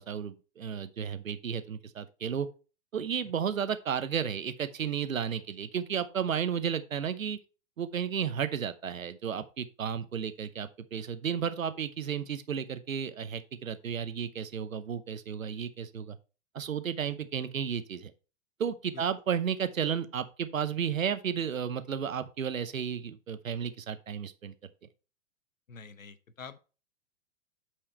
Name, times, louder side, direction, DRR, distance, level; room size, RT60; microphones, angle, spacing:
voice 1, 0.0-2.5 2.9-7.4 7.8-16.2 16.5-18.1 18.6-24.5, right 8 dB, 85° right, 0.9 m, -33 dB
voice 2, 25.7-26.6, left 5 dB, 90° left, 0.9 m, -47 dB
8.9 x 4.9 x 4.3 m
figure-of-eight pair, 105°, 39 cm